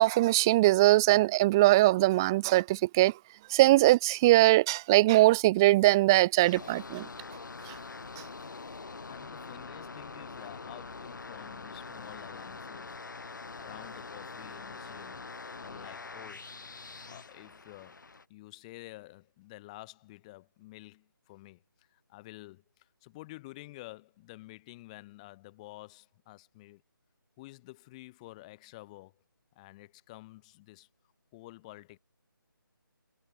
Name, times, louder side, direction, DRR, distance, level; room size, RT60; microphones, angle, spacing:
voice 1, 0.0-3.1 3.5-7.1 7.7-7.8, right 18 dB, 10° right, 0.4 m, -22 dB
sound 1, 6.4-18.2, left 4 dB, 60° left, 6.8 m, -44 dB
voice 2, 9.0-15.2 15.6-18.0 18.3-26.8 27.4-29.2 29.6-30.9 31.3-32.0, left 20 dB, 20° left, 7.0 m, -50 dB
figure-of-eight pair, 155°, 12 cm